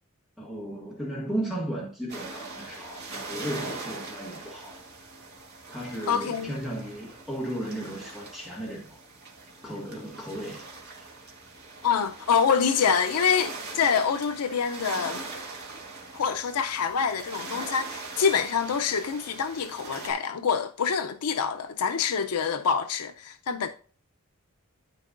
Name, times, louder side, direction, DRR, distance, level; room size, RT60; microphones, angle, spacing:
voice 1, 0.4-4.8 5.7-9.0 9.6-10.7 11.0-11.3, right 1 dB, ahead, 1.6 m, -35 dB
sound 1, 2.1-20.1, right 3 dB, 45° right, 2.1 m, -41 dB
voice 2, 6.1-6.5 11.8-15.2 16.1-23.7, left 6 dB, 90° left, 0.5 m, -26 dB
13.0 x 4.5 x 2.5 m
head